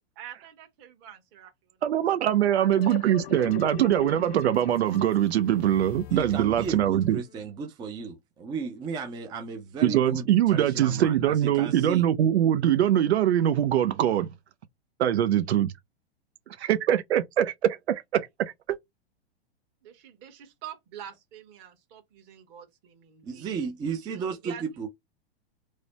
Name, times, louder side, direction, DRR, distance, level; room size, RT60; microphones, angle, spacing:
voice 1, 0.1-1.5 1.9-2.0 2.6-3.5 3.8-3.9 19.8-23.5 24.1-24.6, right 9 dB, 40° right, 1.3 m, -46 dB
voice 2, 1.8-7.2 9.8-14.3 15.0-15.7 16.6-18.8, right 11 dB, 80° right, 0.6 m, -23 dB
sound 1, 2.0-7.4, left 12 dB, 65° left, 0.8 m, -41 dB
voice 3, 6.1-12.1 23.2-24.9, right 5 dB, 15° right, 0.4 m, -35 dB
3.2 x 2.1 x 3.9 m
hypercardioid pair, 125°, 32 cm